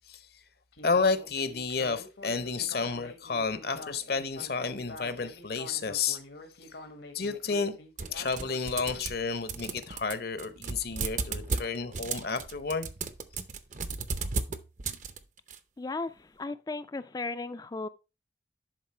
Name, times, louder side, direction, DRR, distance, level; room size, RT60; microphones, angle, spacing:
Speech synthesizer, 0.7-9.1, left 2 dB, 80° left, 1.5 m, -47 dB
voice 1, 0.8-6.2 7.1-7.7 8.1-12.9, left 4 dB, 60° left, 0.8 m, -31 dB
sound 1, 8.0-9.2 9.5-15.6, right 4 dB, 45° right, 0.7 m, -35 dB
voice 2, 15.8-17.9, left 3 dB, 20° left, 0.3 m, -36 dB
11.0 x 4.0 x 4.3 m
head